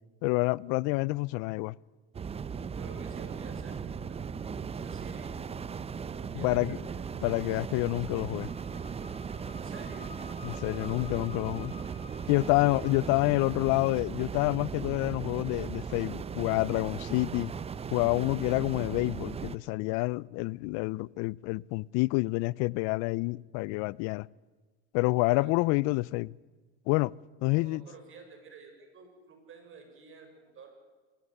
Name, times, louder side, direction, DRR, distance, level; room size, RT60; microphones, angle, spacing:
voice 1, 0.2-1.7 6.4-6.8 7.2-8.5 10.4-11.7 12.3-17.5 17.9-24.3 24.9-26.3 26.9-27.1 27.4-27.8, left 24 dB, 60° left, 0.6 m, -28 dB
sound 1, 2.1-19.6, right 6 dB, 20° right, 0.8 m, -38 dB
voice 2, 2.8-4.3 4.7-5.4 6.1-7.0 9.5-10.1 12.5-13.2 25.3-25.5 27.5-30.7, right 4 dB, 40° right, 6.3 m, -51 dB
sound 2, 7.2-12.9, left 3 dB, 20° left, 7.4 m, -51 dB
21.0 x 17.0 x 10.0 m
supercardioid pair, 105°, 31 cm